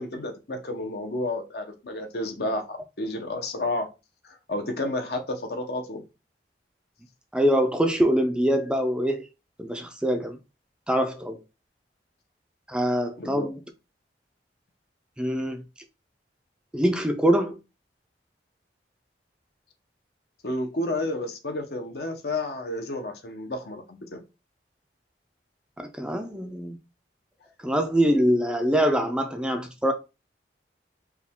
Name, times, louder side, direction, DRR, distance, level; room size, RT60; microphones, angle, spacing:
voice 1, 0.0-3.9 4.2-6.0 13.2-13.5 20.4-24.2, left 2 dB, 60° left, 0.8 m, -31 dB
voice 2, 7.3-9.3 9.6-10.4 10.9-11.4 12.7-13.6 15.2-15.6 16.7-17.6 25.8-26.8 27.6-29.9, equal, 5° right, 0.4 m, -24 dB
4.7 x 2.3 x 3.5 m
head